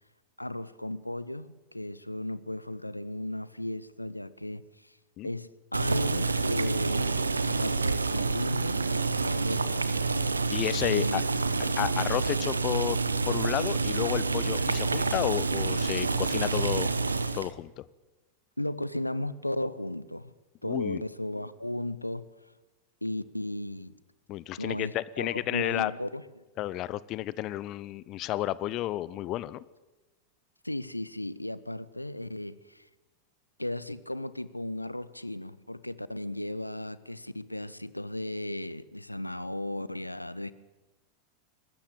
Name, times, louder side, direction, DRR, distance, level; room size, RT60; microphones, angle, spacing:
voice 1, 0.4-5.0 5.2-9.9 10.8-11.2 18.6-20.3 20.6-22.3 23.0-23.9 24.6-26.4 30.6-32.8 33.6-40.5, left 1 dB, 85° left, 0.7 m, -35 dB
Boiling, 5.7-17.5, right 4 dB, 80° right, 0.9 m, -28 dB
voice 2, 10.5-11.2 11.8-13.0 13.3-16.9 17.3-17.8 20.6-21.0 24.3-25.9 26.6-29.6, left 15 dB, 35° left, 0.6 m, -31 dB
22.5 x 13.0 x 8.7 m
figure-of-eight pair, 90°, 0 cm